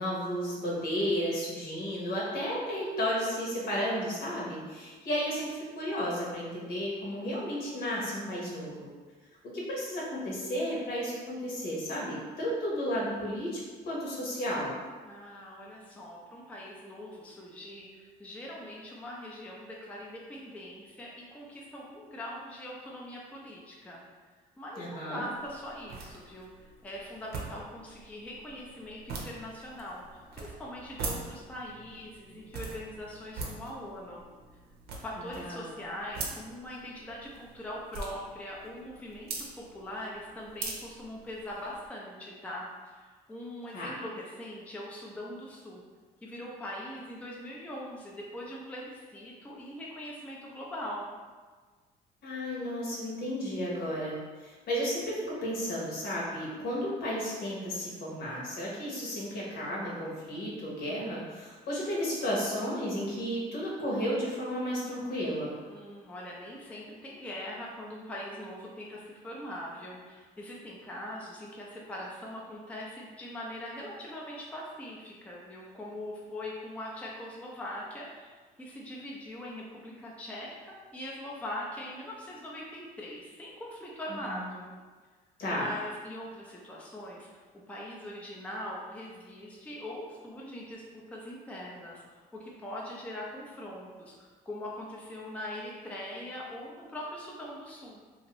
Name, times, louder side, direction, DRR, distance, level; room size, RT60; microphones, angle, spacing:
voice 1, 0.0-8.9 9.4-13.6 13.9-14.7 24.8-25.2 35.4-35.8 43.7-43.9 52.2-65.5 84.3-84.4 85.4-85.7, equal, 65° left, -5 dB, 1.1 m, -33 dB
voice 2, 15.0-24.0 24.6-26.5 26.8-34.2 35.0-45.8 46.2-51.1 65.7-80.5 80.9-84.7 85.5-87.4 87.7-98.0, left 1 dB, 10° left, -4 dB, 0.4 m, -42 dB
sound 1, 25.4-41.9, right 3 dB, 70° right, 0.6 m, -43 dB
2.7 x 2.5 x 3.0 m, 1.4 s
cardioid pair, 110°, 17 cm